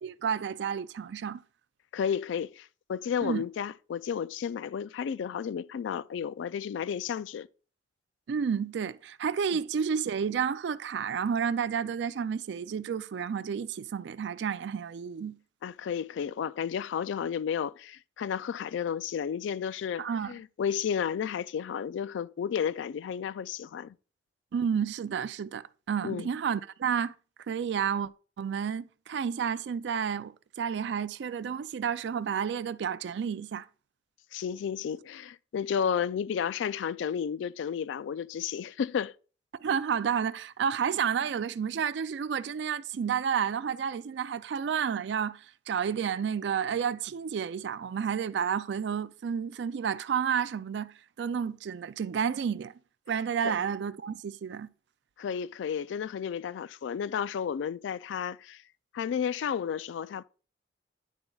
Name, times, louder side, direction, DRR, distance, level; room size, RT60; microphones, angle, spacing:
voice 1, 0.0-1.4 3.2-3.4 8.3-15.3 20.0-20.3 24.5-27.1 27.5-28.1 28.4-33.7 39.6-52.7 53.1-54.7, right 7 dB, 65° right, 0.3 m, -31 dB
voice 2, 1.9-7.5 9.5-9.6 15.6-23.9 26.0-26.3 34.3-39.1 53.4-53.6 55.2-58.6 58.9-60.2, left 7 dB, 80° left, 0.3 m, -32 dB
10.0 x 7.0 x 2.3 m
head